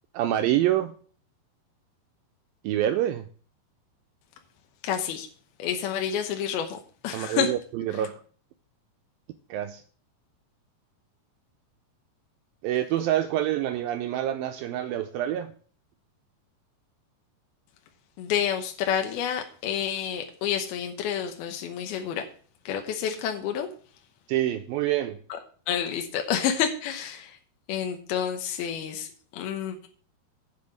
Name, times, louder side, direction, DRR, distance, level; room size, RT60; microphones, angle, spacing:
voice 1, 0.1-0.9 2.6-3.2 7.1-8.2 9.5-9.8 12.6-15.5 24.3-25.2, right 12 dB, 90° right, 7 dB, 2.0 m, -26 dB
voice 2, 4.8-5.3 5.6-7.5 7.9-8.0 18.2-22.2 22.7-23.7 25.3-25.4 25.7-27.4 27.7-29.9, left 8 dB, 75° left, 4 dB, 2.7 m, -29 dB
8.6 x 5.7 x 7.7 m, 0.43 s
omnidirectional pair, 4.9 m